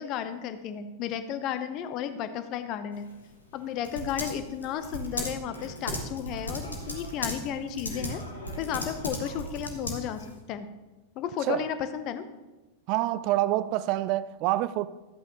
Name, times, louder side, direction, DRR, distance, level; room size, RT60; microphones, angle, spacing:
voice 1, 0.0-3.1 3.5-8.2 8.6-10.7 11.2-12.3, left 9 dB, 40° left, 0.7 m, -33 dB
Typing, 2.9-10.4, left 1 dB, 80° left, 1.5 m, -37 dB
voice 2, 12.9-14.9, right 15 dB, 45° right, 0.4 m, -26 dB
12.5 x 8.4 x 2.9 m
figure-of-eight pair, 90°, 0 cm